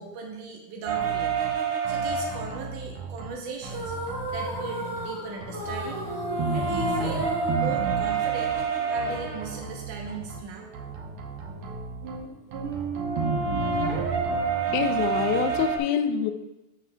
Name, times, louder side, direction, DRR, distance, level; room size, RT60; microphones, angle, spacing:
voice 1, 0.0-1.4 1.9-6.1 6.5-7.3 7.5-8.5 8.9-10.7, right 4 dB, 90° right, 0 dB, 2.5 m, -38 dB
sound 1, 0.9-3.3 3.6-5.1 5.4-15.8, right 5 dB, 70° right, 1.3 m, -29 dB
sound 2, 3.6-8.5, right 1 dB, 40° right, 2.5 m, -35 dB
voice 2, 14.7-16.3, left 8 dB, 85° left, 9 dB, 2.1 m, -25 dB
13.5 x 6.1 x 2.3 m, 0.94 s
omnidirectional pair, 3.5 m